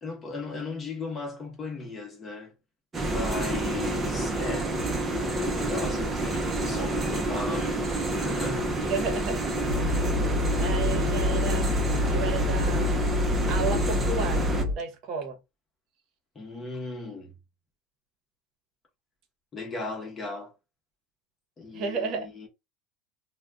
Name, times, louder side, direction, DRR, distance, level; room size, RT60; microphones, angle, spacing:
voice 1, 0.0-2.5 3.0-4.8 5.4-8.7 16.3-17.3 19.5-20.5 21.6-22.5, left 3 dB, 20° left, 0.9 m, -36 dB
sound 1, 2.9-14.6, right 2 dB, 20° right, 0.5 m, -28 dB
voice 2, 8.9-9.5 9.8-10.1 10.6-11.7 12.1-12.9 13.5-14.4 14.7-15.4 21.7-22.3, right 5 dB, 50° right, 0.8 m, -32 dB
sound 2, 9.7-14.7, left 3 dB, 75° right, 0.6 m, -27 dB
2.4 x 2.1 x 3.4 m
cardioid pair, 145°, 0 cm